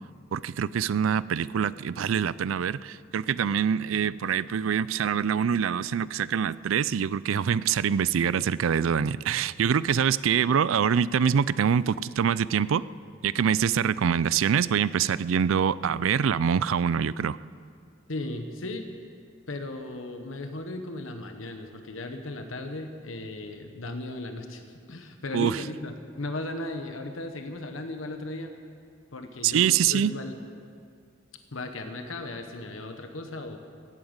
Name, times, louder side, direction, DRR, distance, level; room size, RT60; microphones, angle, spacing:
voice 1, 0.3-12.8 13.2-17.4 25.3-25.6 29.4-30.1, right 7 dB, 85° right, 19 dB, 0.4 m, -25 dB
voice 2, 18.1-18.9 19.5-28.5 29.1-30.4 31.5-33.6, left 2 dB, 85° left, 6 dB, 1.1 m, -36 dB
17.0 x 8.9 x 8.0 m, 2.2 s
head